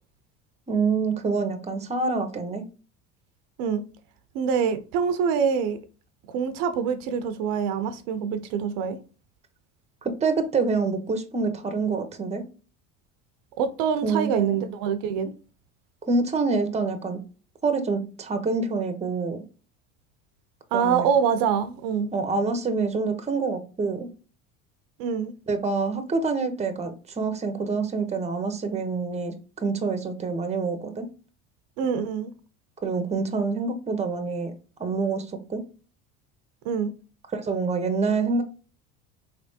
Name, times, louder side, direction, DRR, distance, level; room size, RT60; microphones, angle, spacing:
voice 1, 0.7-2.7 10.0-12.4 14.0-14.6 16.0-17.2 17.6-19.4 20.7-21.1 22.1-24.1 25.5-31.1 32.8-34.5 34.8-35.6 37.3-38.4, right 4 dB, 20° right, 0.8 m, -26 dB
voice 2, 4.3-5.8 6.3-9.0 13.6-15.3 20.7-22.1 25.0-25.3 31.8-32.3 36.6-36.9, right 7 dB, 65° right, 0.7 m, -25 dB
4.1 x 3.4 x 2.7 m
supercardioid pair, 100°, 36 cm